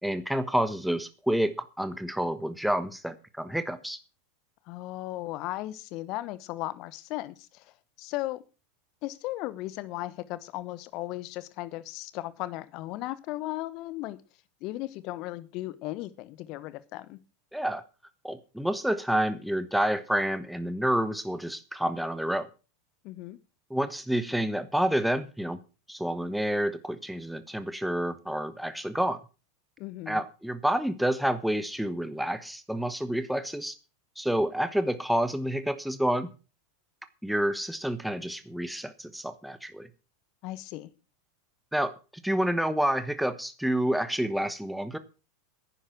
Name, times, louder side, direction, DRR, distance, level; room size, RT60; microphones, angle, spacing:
voice 1, 0.0-4.0 17.5-17.8 18.2-22.5 23.7-25.6 25.9-29.2 30.1-33.8 34.2-36.3 37.2-39.9 41.7-41.9 42.2-45.0, right 1 dB, ahead, 12 dB, 1.2 m, -29 dB
voice 2, 4.7-7.6 8.0-8.4 9.0-14.2 14.6-17.2 23.0-23.4 29.8-30.2 40.4-40.9, left 17 dB, 50° left, 17 dB, 1.1 m, -36 dB
10.0 x 10.0 x 6.2 m, 0.33 s
figure-of-eight pair, 85°, 0 cm